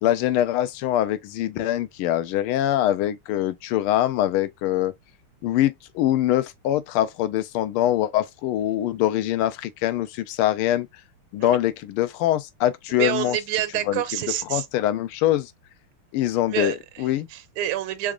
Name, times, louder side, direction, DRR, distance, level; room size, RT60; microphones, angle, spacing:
voice 1, 0.0-4.9 5.4-10.9 11.3-13.4 13.9-14.0 14.5-15.5 16.1-17.3, left 13 dB, 85° left, 1.5 m, -23 dB
voice 2, 13.0-14.7 16.5-18.1, right 12 dB, 90° right, 1.5 m, -28 dB
4.0 x 3.6 x 2.4 m
omnidirectional pair, 2.4 m